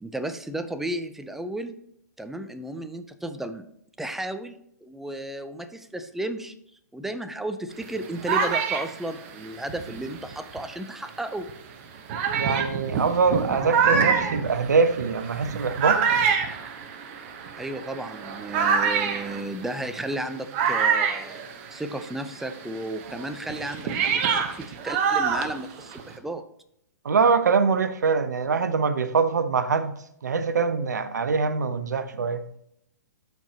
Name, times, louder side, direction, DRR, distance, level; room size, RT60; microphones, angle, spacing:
voice 1, 0.0-1.8 2.2-3.7 4.0-6.5 6.9-11.5 17.6-21.4 21.7-26.4, right 1 dB, 5° right, 9 dB, 0.5 m, -33 dB
sound 1, 7.8-10.8 11.5-11.6 12.1-22.1 22.4-26.2, right 6 dB, 40° right, 0.9 m, -26 dB
voice 2, 12.4-16.0 27.0-32.4, right 5 dB, 75° right, 11 dB, 0.8 m, -23 dB
13.0 x 4.6 x 2.8 m, 0.73 s
hypercardioid pair, 125°, 10 cm